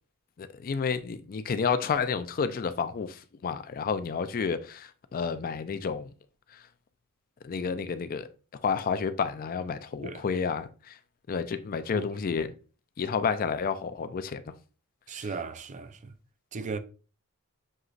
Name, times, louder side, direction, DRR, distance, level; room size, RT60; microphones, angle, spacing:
voice 1, 0.4-6.1 7.4-8.3 8.6-10.9 11.3-12.5 13.0-14.4, left 5 dB, 40° left, 0.4 m, -30 dB
voice 2, 15.1-16.1 16.5-16.8, right 4 dB, 35° right, 0.4 m, -36 dB
6.4 x 2.9 x 2.5 m
head